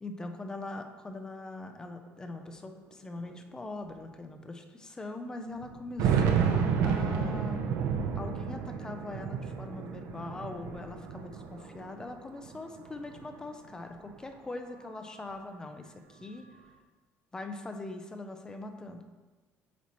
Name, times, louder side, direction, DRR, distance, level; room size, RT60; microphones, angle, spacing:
voice 1, 0.0-7.6 8.2-16.5 17.3-19.0, left 2 dB, 15° left, 6 dB, 0.4 m, -42 dB
sound 1, 2.1-2.2 2.4-2.5 3.3-3.4 3.9-4.0 5.6-12.0 12.4-13.4, right 7 dB, 70° right, 0.6 m, -30 dB
8.2 x 3.0 x 4.2 m, 1.3 s
cardioid pair, 165°, 5 cm